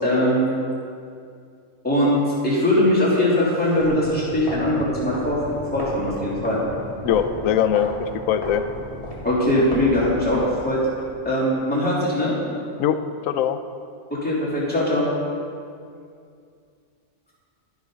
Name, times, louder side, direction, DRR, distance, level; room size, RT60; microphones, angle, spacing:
voice 1, 0.0-0.5 1.8-2.2 2.4-5.4 5.7-6.6 9.2-10.8 11.2-12.3 14.1-15.1, left 1 dB, 5° left, -9 dB, 3.3 m, -21 dB
sound 1, 3.7-11.1, equal, 25° left, 2.1 m, -35 dB
voice 2, 7.0-8.6 12.8-13.6, left 9 dB, 80° left, 10 dB, 1.0 m, -22 dB
12.0 x 11.0 x 3.9 m, 2.3 s
omnidirectional pair, 1.4 m